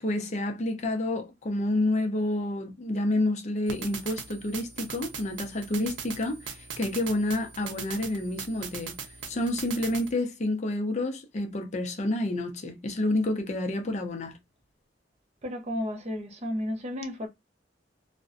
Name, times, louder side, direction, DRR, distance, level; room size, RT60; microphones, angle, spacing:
voice 1, 0.0-9.0 9.3-14.4, left 1 dB, 40° left, 0.5 m, -29 dB
sound 1, 3.7-10.1, right 6 dB, 85° right, 0.5 m, -40 dB
voice 2, 15.4-17.3, left 1 dB, 35° right, 0.6 m, -32 dB
2.4 x 2.1 x 2.4 m
head